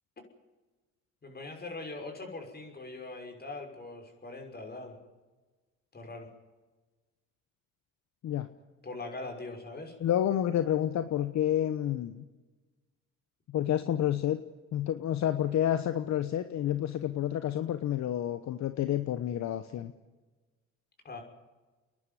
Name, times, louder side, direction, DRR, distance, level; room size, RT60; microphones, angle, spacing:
voice 1, 1.2-5.0 5.9-6.3 8.8-9.9 21.0-21.2, left 2 dB, 30° left, 3 dB, 6.1 m, -41 dB
voice 2, 10.0-12.2 13.5-14.4 14.7-19.9, left 11 dB, 60° left, 10 dB, 1.0 m, -29 dB
30.0 x 11.0 x 9.6 m, 1.2 s
cardioid pair, 80°, 30 cm